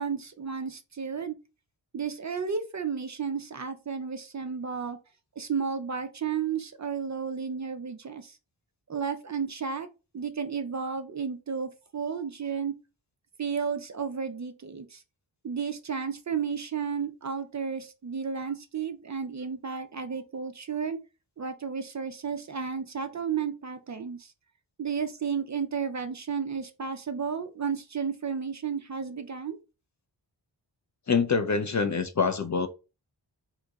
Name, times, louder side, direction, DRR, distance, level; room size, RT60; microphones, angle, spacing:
voice 1, 0.0-1.3 1.9-5.0 5.4-8.4 8.9-9.9 10.1-12.7 13.4-15.0 15.4-21.0 21.4-24.3 24.8-29.6, right 6 dB, 40° right, 0.4 m, -32 dB
voice 2, 31.1-32.7, left 5 dB, 40° left, 0.4 m, -25 dB
3.7 x 2.9 x 2.3 m
wide cardioid pair, 85°, 48 cm